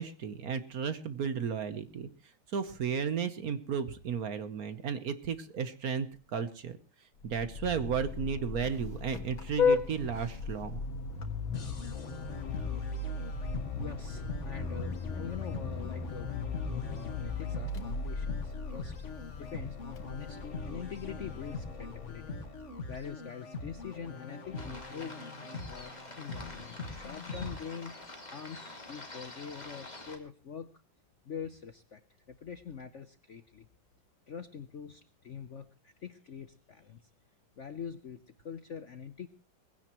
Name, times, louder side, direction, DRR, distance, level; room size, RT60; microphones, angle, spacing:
voice 1, 0.0-2.1 2.5-6.1 6.3-6.8 7.3-10.8, right 7 dB, 55° right, 12 dB, 1.3 m, -34 dB
Vehicle horn car horn honking, 7.2-22.6, left 5 dB, 85° left, 2.3 m, -36 dB
sound 1, 11.5-27.5, left 3 dB, 40° left, 1.9 m, -43 dB
voice 2, 13.8-16.3 16.8-22.4 22.9-25.2 25.6-30.7 31.2-32.0 32.3-33.7 34.3-37.1 37.6-39.3, left 7 dB, 55° left, 10 dB, 0.8 m, -44 dB
sound 2, 24.5-30.2, left 2 dB, 20° left, 2.4 m, -47 dB
20.0 x 16.0 x 3.0 m, 0.36 s
omnidirectional pair, 2.1 m